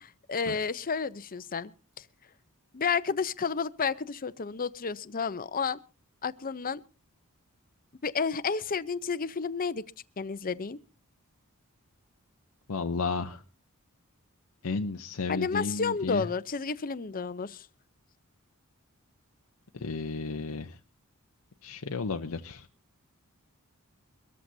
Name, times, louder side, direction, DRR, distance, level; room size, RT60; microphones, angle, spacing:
voice 1, 0.0-1.7 2.0-2.1 2.7-5.8 6.2-6.8 8.0-9.8 10.2-10.8 15.3-17.7, left 5 dB, 40° left, 0.7 m, -31 dB
voice 2, 12.7-13.4 14.6-16.3 19.7-20.8 21.6-22.7, left 4 dB, 80° left, 0.7 m, -33 dB
23.5 x 14.0 x 2.7 m
head